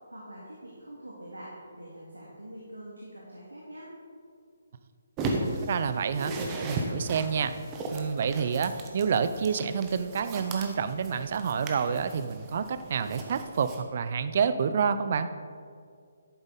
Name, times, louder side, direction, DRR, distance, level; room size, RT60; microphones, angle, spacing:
voice 1, 0.1-3.9, right 1 dB, 85° right, -4 dB, 2.0 m, -45 dB
sound 1, 5.2-13.8, right 2 dB, 20° right, 1.1 m, -36 dB
voice 2, 5.7-7.5 7.9-15.3, right 6 dB, 45° right, 11 dB, 0.6 m, -28 dB
11.0 x 8.8 x 3.9 m, 2.2 s
figure-of-eight pair, 140°, 0 cm